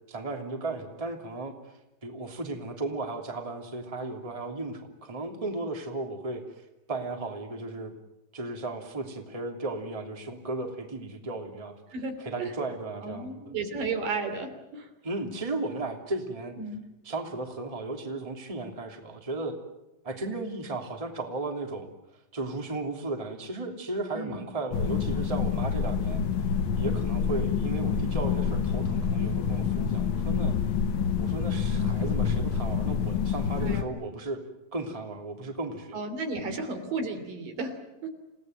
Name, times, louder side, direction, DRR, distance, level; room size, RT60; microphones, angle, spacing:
voice 1, 0.1-1.5 2.0-6.4 6.9-7.9 8.3-11.7 12.2-13.5 15.0-16.5 17.0-19.6 20.0-21.9 22.3-26.2 26.8-30.5 31.2-34.4 34.7-36.0, right 2 dB, 10° right, 3 dB, 2.6 m, -35 dB
voice 2, 11.9-12.5 13.0-14.9 16.6-16.8 24.1-24.4 33.6-34.0 35.9-37.8 38.0-38.1, right 3 dB, 70° right, 6 dB, 4.7 m, -33 dB
sound 1, 24.7-33.8, left 6 dB, 80° left, 1.0 m, -27 dB
29.0 x 17.5 x 9.2 m, 0.95 s
omnidirectional pair, 4.0 m